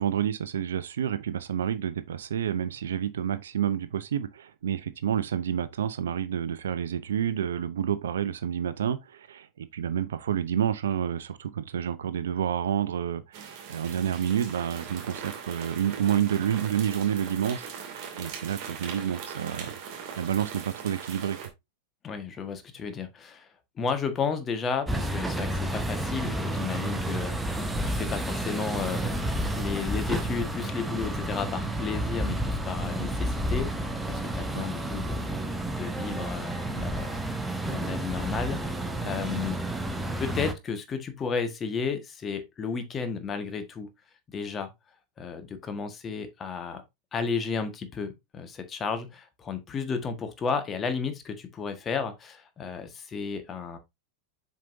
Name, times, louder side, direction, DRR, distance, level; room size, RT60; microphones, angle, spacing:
voice 1, 0.0-19.7 20.2-21.4 34.5-34.7, right 9 dB, 65° right, 0.6 m, -29 dB
sound 1, 13.3-21.5, right 7 dB, 45° right, 2.3 m, -40 dB
voice 2, 22.0-23.5 23.8-35.2 35.7-37.2 37.7-39.6 40.2-43.9 44.3-44.7 45.2-46.8 47.1-53.8, left 5 dB, 25° left, 1.5 m, -33 dB
sound 2, 24.9-40.5, right 1 dB, 5° right, 1.1 m, -31 dB
7.5 x 5.3 x 2.7 m
figure-of-eight pair, 90°, 0 cm